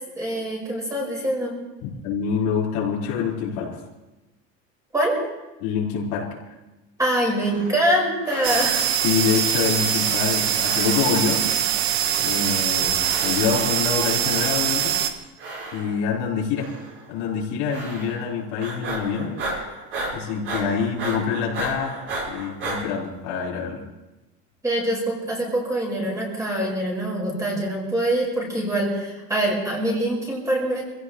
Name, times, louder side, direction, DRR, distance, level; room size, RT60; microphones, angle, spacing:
voice 1, 0.1-1.5 4.9-5.2 7.0-8.9 24.6-30.8, right 1 dB, 10° right, -2 dB, 5.1 m, -24 dB
voice 2, 1.8-3.8 5.6-6.3 9.0-11.6 12.2-15.0 15.7-16.7 17.1-19.4 20.1-21.9 22.3-23.8, left 6 dB, 85° left, -4 dB, 4.9 m, -26 dB
sound 1, 7.2-8.0 8.2-9.0 9.6-10.4 10.6-11.4 11.9-12.6 13.0-13.6 14.2-14.9 15.4-16.2 16.6-17.0 17.7-18.3 18.6-22.8, right 2 dB, 40° right, 6.6 m, -35 dB
sound 2, 8.4-15.1, right 10 dB, 85° right, 1.5 m, -23 dB
27.0 x 16.0 x 3.2 m, 1.0 s
cardioid pair, 160°, 33 cm